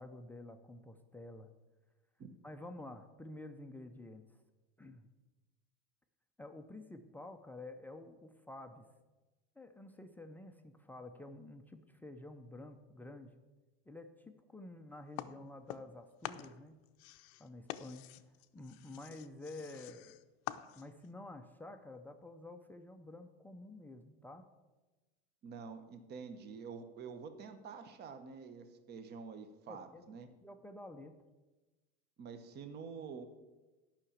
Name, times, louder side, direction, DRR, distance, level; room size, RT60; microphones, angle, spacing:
voice 1, 0.0-1.5 2.4-4.2 4.8-5.1 6.4-8.9 9.6-13.4 13.9-16.8 17.4-18.2 18.5-20.2 20.7-24.5 29.7-30.0 30.4-31.2, left 2 dB, 5° left, 5 dB, 0.4 m, -50 dB
sound 1, 15.2-21.1, left 14 dB, 55° left, 0.6 m, -47 dB
voice 2, 25.4-30.3 32.2-33.3, right 5 dB, 35° right, 9 dB, 0.9 m, -48 dB
9.8 x 5.8 x 7.1 m, 1.2 s
supercardioid pair, 130°, 31 cm